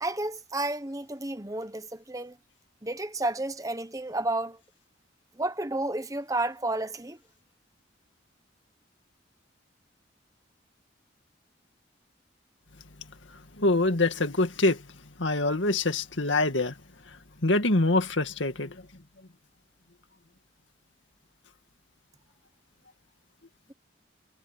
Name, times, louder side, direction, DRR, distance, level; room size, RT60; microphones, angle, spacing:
voice 1, 0.0-2.4 2.8-4.6 5.4-7.2, right 2 dB, 20° right, 1.1 m, -31 dB
voice 2, 13.6-14.8 15.2-16.7 17.4-18.8, left 2 dB, 80° left, 2.2 m, -24 dB
head